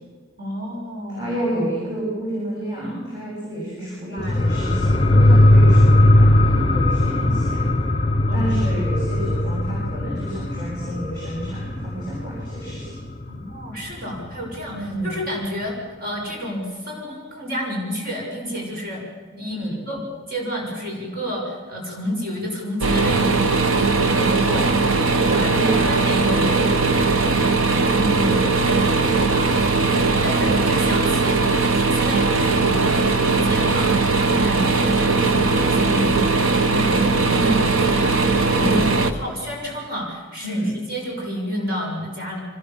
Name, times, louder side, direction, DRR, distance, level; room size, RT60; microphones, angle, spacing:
voice 1, 0.4-1.3 3.7-4.4 8.3-8.5 13.3-15.7 16.0-19.0 19.3-20.0 20.3-23.6 25.4-26.3 27.9-28.4 30.0-42.4, equal, 45° right, -2 dB, 6.8 m, -30 dB
voice 2, 1.1-7.6 8.3-12.9 14.7-15.2 19.5-19.8 24.1-24.7 25.3-27.6 28.3-29.3 34.4-34.6 37.3-37.6 38.6-38.9 40.4-40.7, right 1 dB, 20° right, -6 dB, 7.9 m, -29 dB
sound 1, 4.2-13.3 13.6-13.7, left 1 dB, 25° left, 0.9 m, -18 dB
sound 2, 22.8-39.1, right 3 dB, 90° right, 1.4 m, -19 dB
25.0 x 20.0 x 7.5 m, 1.4 s
head